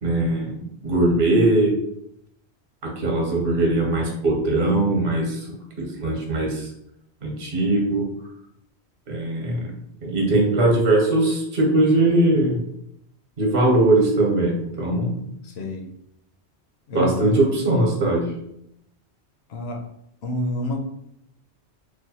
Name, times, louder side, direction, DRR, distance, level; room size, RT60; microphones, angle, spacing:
voice 1, 0.0-1.8 2.8-5.5 5.8-6.7 7.2-8.1 9.1-9.7 10.0-12.6 13.4-15.1 16.9-18.2, right 2 dB, 55° right, -2 dB, 1.1 m, -20 dB
voice 2, 15.4-15.9 16.9-17.4 19.5-19.8 20.2-20.8, left 1 dB, 70° left, 3 dB, 0.8 m, -28 dB
3.1 x 2.2 x 4.0 m, 0.77 s
omnidirectional pair, 1.2 m